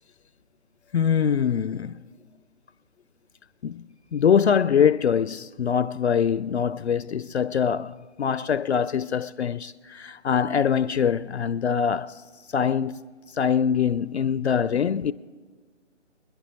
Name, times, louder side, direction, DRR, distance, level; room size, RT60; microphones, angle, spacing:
voice 1, 0.9-2.0 3.6-3.8 4.1-12.1 12.5-13.0 13.4-15.1, left 7 dB, 60° left, 0.5 m, -23 dB
25.5 x 10.5 x 3.1 m
figure-of-eight pair, 145°, 37 cm